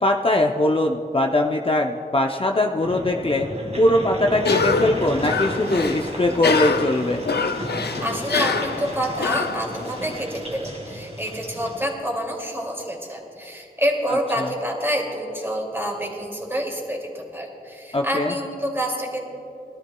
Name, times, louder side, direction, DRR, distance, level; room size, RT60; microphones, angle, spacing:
voice 1, 0.0-3.5 3.8-7.2 14.4-14.5 17.9-18.3, left 1 dB, 35° left, 2 dB, 0.6 m, -21 dB
sound 1, 2.8-11.9, right 1 dB, 40° right, 2.1 m, -33 dB
Cough, 4.4-10.2, left 4 dB, 85° left, 0.5 m, -25 dB
voice 2, 8.0-19.2, equal, 15° right, -1 dB, 2.4 m, -27 dB
21.5 x 13.0 x 2.3 m, 3.0 s
wide cardioid pair, 60°, 17 cm